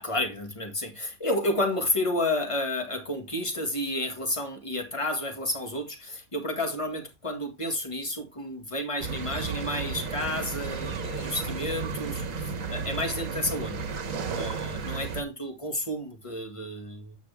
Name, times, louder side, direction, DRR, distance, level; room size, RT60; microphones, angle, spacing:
voice 1, 0.0-13.9 14.3-17.2, left 1 dB, 25° left, 1.8 m, -31 dB
sound 1, 9.0-15.2, right 5 dB, 70° right, 1.6 m, -33 dB
9.2 x 5.7 x 3.3 m
omnidirectional pair, 1.4 m